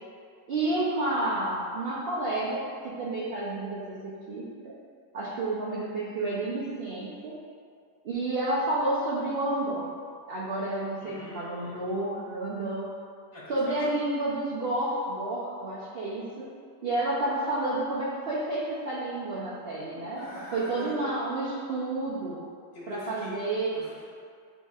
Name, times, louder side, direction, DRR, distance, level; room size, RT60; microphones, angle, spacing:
voice 1, 0.5-4.5 5.1-7.4 8.0-9.9 10.3-12.9 13.5-16.5 16.8-22.4 22.9-23.7, right 2 dB, 80° right, -7 dB, 0.5 m, -30 dB
voice 2, 11.0-11.8 13.3-13.8 20.1-21.0 22.7-23.3 23.7-24.0, left 1 dB, 65° left, -10 dB, 2.1 m, -43 dB
8.2 x 2.7 x 2.4 m, 2.2 s
omnidirectional pair, 1.9 m